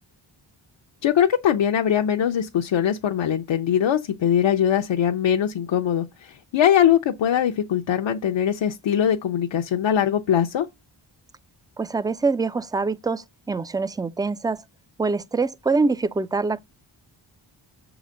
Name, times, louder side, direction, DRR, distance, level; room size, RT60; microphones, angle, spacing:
voice 1, 1.0-10.7, left 9 dB, 70° left, 0.7 m, -21 dB
voice 2, 11.8-14.6 15.0-16.6, right 4 dB, 10° right, 0.3 m, -24 dB
6.6 x 4.0 x 6.3 m
cardioid pair, 80°, 45 cm